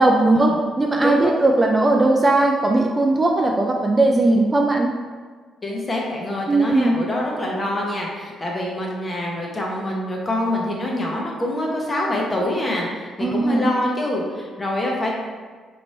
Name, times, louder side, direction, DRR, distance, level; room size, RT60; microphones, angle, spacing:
voice 1, 0.0-4.9 6.5-7.0 13.2-13.7, right 2 dB, 25° right, 1 dB, 0.3 m, -18 dB
voice 2, 1.0-1.5 5.6-15.1, left 1 dB, 25° left, -2 dB, 0.9 m, -25 dB
3.2 x 2.6 x 4.2 m, 1.5 s
cardioid pair, 90°, 0 cm